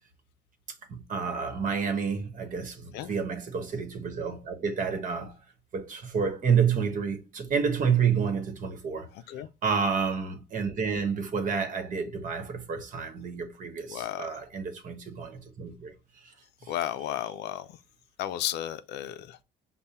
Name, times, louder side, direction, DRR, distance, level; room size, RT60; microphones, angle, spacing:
voice 1, 0.9-5.4 5.7-9.1 9.3-15.9 16.2-16.3 16.6-16.7, right 6 dB, 50° right, 1.1 m, -29 dB
voice 2, 13.9-14.3 16.7-17.8 18.2-19.4, left 12 dB, 80° left, 0.4 m, -33 dB
5.4 x 2.2 x 4.1 m
cardioid pair, 110°, 17 cm